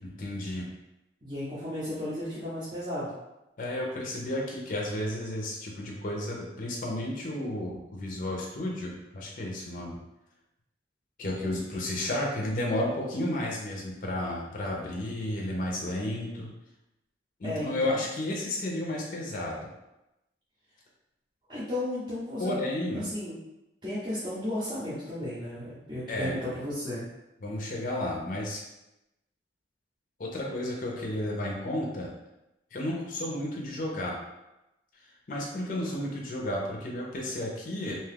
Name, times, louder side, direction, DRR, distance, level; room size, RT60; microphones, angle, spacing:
voice 1, 0.0-0.7 3.6-10.0 11.2-16.5 17.4-19.7 22.4-23.0 26.1-26.4 27.4-28.6 30.2-32.1 32.7-34.1 35.0-38.0, left 1 dB, 45° left, -2 dB, 0.5 m, -32 dB
voice 2, 1.2-3.1 17.4-18.0 21.5-22.6 22.9-23.4 23.8-27.0, left 1 dB, 25° right, -12 dB, 0.6 m, -34 dB
2.7 x 2.3 x 3.3 m, 0.93 s
head